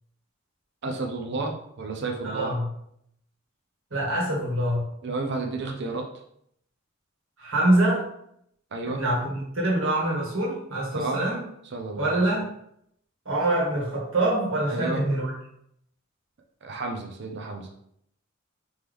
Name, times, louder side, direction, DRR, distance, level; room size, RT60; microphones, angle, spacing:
voice 1, 0.8-2.5 5.0-6.1 8.7-9.0 10.9-11.3 11.7-12.2 14.7-15.0 16.6-17.7, right 3 dB, 55° right, 2 dB, 0.5 m, -31 dB
voice 2, 2.2-2.7 3.9-4.8 7.4-8.1 8.9-11.5 12.0-12.5 13.3-15.3, right 1 dB, 80° right, -4 dB, 1.6 m, -25 dB
3.5 x 3.0 x 3.4 m, 0.72 s
head